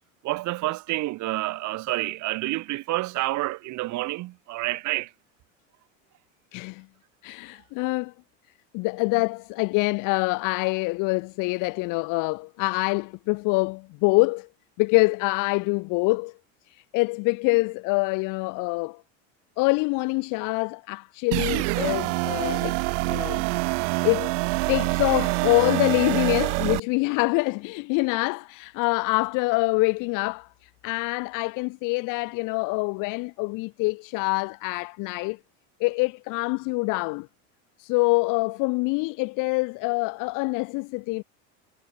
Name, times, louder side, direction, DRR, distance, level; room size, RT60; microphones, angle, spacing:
voice 1, 0.2-5.1, right 18 dB, 55° right, 2.0 m, -28 dB
voice 2, 6.5-6.9 7.2-8.1 8.7-14.5 14.8-16.3 16.7-19.0 19.6-22.8 23.1-23.4 24.0-24.3 24.7-35.4 35.8-37.3 37.8-41.2, left 27 dB, 60° left, 0.9 m, -25 dB
sound 1, 21.3-26.8, right 30 dB, 75° right, 3.2 m, -25 dB
supercardioid pair, 110°, 36 cm